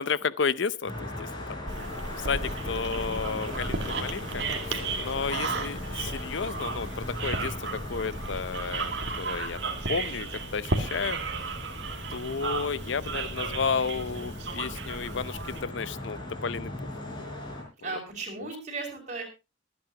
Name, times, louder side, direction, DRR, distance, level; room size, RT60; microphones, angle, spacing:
voice 1, 0.0-1.6 2.2-11.2 12.1-16.7 17.8-18.0 18.4-18.5, left 5 dB, 70° left, 0.6 m, -32 dB
sound 1, 0.9-17.6, left 1 dB, 25° left, 4.7 m, -39 dB
sound 2, 1.7-15.6, right 3 dB, 60° right, 2.0 m, -34 dB
voice 2, 17.8-19.2, right 3 dB, 35° right, 5.5 m, -36 dB
24.5 x 9.4 x 2.9 m
head